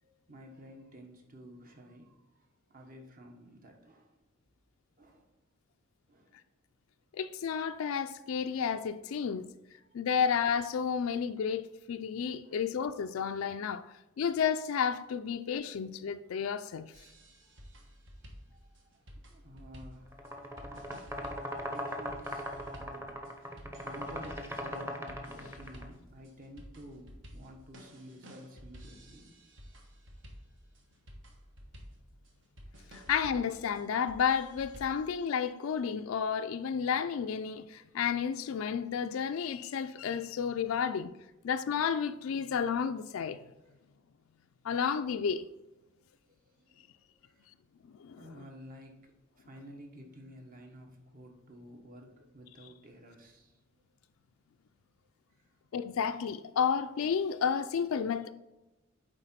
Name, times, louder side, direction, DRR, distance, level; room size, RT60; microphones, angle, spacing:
voice 1, 0.0-4.1 5.0-5.3 6.1-6.4 9.8-10.0 12.4-12.6 18.5-20.2 21.5-22.5 22.8-29.4 46.0-47.5 48.1-53.8 55.4-55.5, equal, 45° right, 1.2 m, -52 dB
voice 2, 7.1-9.5 9.9-13.8 14.2-16.9 32.9-41.1 41.4-43.5 44.6-45.5 47.9-48.2 55.7-58.3, left 7 dB, 85° left, 0.4 m, -31 dB
sound 1, 16.9-35.1, equal, 65° right, 1.3 m, -52 dB
sound 2, 20.1-25.9, equal, 10° right, 0.8 m, -39 dB
8.9 x 3.8 x 4.3 m
head